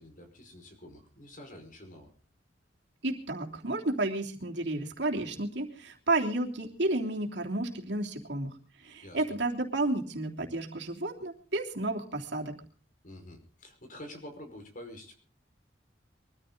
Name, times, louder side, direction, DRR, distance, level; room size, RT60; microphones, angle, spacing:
voice 1, 0.0-2.1 9.0-9.4 13.0-15.2, left 1 dB, 50° left, 5 dB, 5.3 m, -48 dB
voice 2, 3.0-8.5 8.8-12.5, right 2 dB, 70° right, 1 dB, 3.3 m, -31 dB
23.5 x 14.0 x 4.0 m, 0.40 s
head